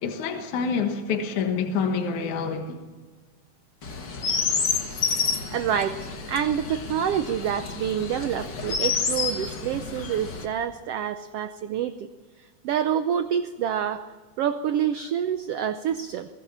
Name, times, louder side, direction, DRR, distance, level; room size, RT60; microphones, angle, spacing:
voice 1, 0.0-2.8, left 5 dB, 70° left, 2.9 m, -27 dB
Chirp tweet, 3.8-10.4, left 5 dB, 40° left, 1.9 m, -29 dB
voice 2, 5.5-12.1 12.6-14.0 14.4-16.3, right 9 dB, 90° right, 1.3 m, -27 dB
22.5 x 17.0 x 7.2 m
omnidirectional pair, 3.7 m